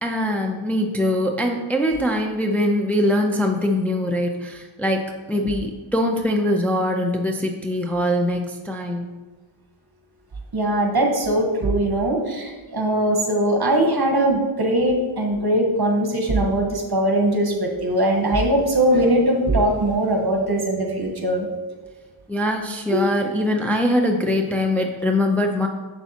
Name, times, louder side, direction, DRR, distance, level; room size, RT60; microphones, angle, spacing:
voice 1, 0.0-9.1 22.3-25.7, left 1 dB, 5° left, 2 dB, 0.6 m, -22 dB
voice 2, 10.5-21.5 22.9-23.0, right 1 dB, 50° right, 2 dB, 1.3 m, -20 dB
6.9 x 6.8 x 2.9 m, 1.3 s
wide cardioid pair, 55°, 49 cm